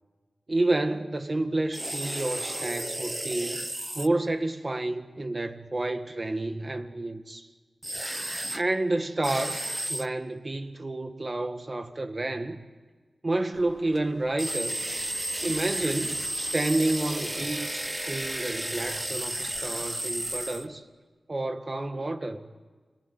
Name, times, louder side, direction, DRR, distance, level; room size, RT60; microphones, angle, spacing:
voice 1, 0.5-3.6 3.9-7.5 8.5-12.6 13.2-14.8 15.4-20.8 21.3-22.5, right 2 dB, 35° right, 1.8 m, -30 dB
sound 1, 1.7-4.1 7.8-8.6 9.2-10.1 14.4-20.7, right 1 dB, 15° right, 0.9 m, -33 dB
sound 2, 13.5-20.6, equal, ahead, 4.6 m, -52 dB
29.5 x 21.0 x 9.4 m
wide cardioid pair, 70°, 0 cm